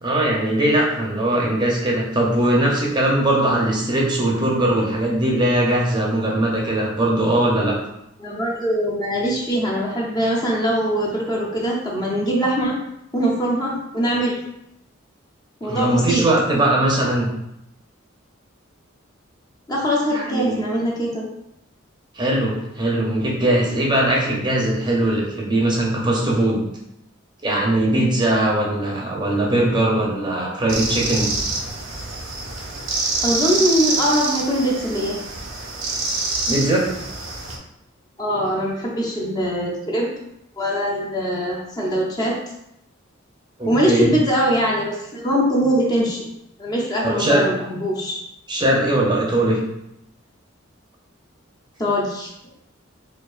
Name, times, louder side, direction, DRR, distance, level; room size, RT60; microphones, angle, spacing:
voice 1, 0.0-7.8 15.6-17.3 20.1-20.7 22.1-26.6 27.4-31.3 36.5-36.9 43.6-44.1 47.0-47.4 48.5-49.6, right 1 dB, 20° right, -2 dB, 0.6 m, -20 dB
voice 2, 8.2-12.8 13.1-14.4 15.6-16.2 19.7-21.2 33.2-35.2 38.2-40.1 40.6-42.4 43.7-46.3 46.6-48.2 51.8-52.3, equal, 20° left, -3 dB, 0.6 m, -22 dB
sound 1, 30.7-37.6, right 3 dB, 75° right, 0.6 m, -26 dB
4.5 x 2.4 x 2.4 m, 0.81 s
head